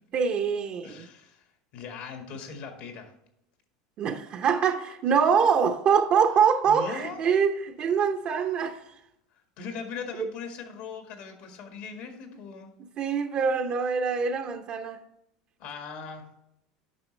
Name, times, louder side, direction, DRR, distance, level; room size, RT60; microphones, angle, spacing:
voice 1, 0.1-1.1 4.0-9.0 10.2-10.3 13.0-15.0, right 6 dB, 45° right, 4 dB, 0.8 m, -24 dB
voice 2, 0.8-1.5 1.7-3.1 6.7-7.2 9.3-12.7 15.6-16.3, left 5 dB, 65° left, 5 dB, 1.8 m, -40 dB
9.2 x 5.8 x 3.2 m, 0.81 s
supercardioid pair, 105°, 3 cm